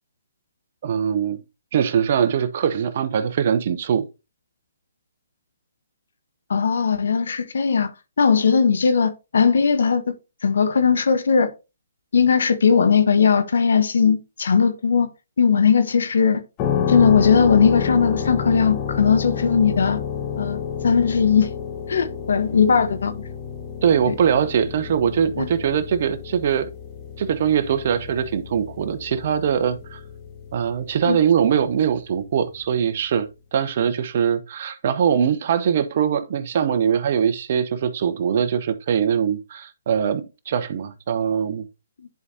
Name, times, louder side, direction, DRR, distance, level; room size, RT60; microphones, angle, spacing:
voice 1, 0.8-1.4 1.7-4.0 23.8-26.7 27.2-30.0 30.5-41.6, right 8 dB, 50° right, 0.9 m, -22 dB
voice 2, 6.5-7.9 8.2-10.1 10.4-11.5 12.1-15.1 15.4-16.4 16.9-20.0 20.4-21.5 21.9-23.2 24.1-24.2 25.4-25.5 31.1-31.2, left 6 dB, 70° left, 1.2 m, -18 dB
sound 1, 16.6-31.3, left 7 dB, 30° left, 1.4 m, -30 dB
10.5 x 4.8 x 2.7 m
hypercardioid pair, 140°, 0 cm